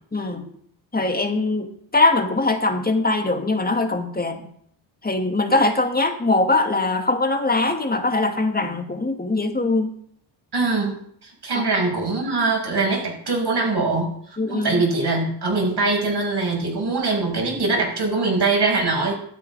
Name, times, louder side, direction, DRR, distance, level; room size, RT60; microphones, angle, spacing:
voice 1, 0.1-0.4 0.9-4.5 5.0-9.9 11.5-11.7 14.4-14.8, left 2 dB, 20° left, 5 dB, 2.3 m, -22 dB
voice 2, 10.5-11.0 11.2-14.1 14.5-19.1, right 3 dB, 50° right, 0 dB, 6.3 m, -22 dB
12.5 x 8.3 x 4.9 m, 0.66 s
supercardioid pair, 60°, 50 cm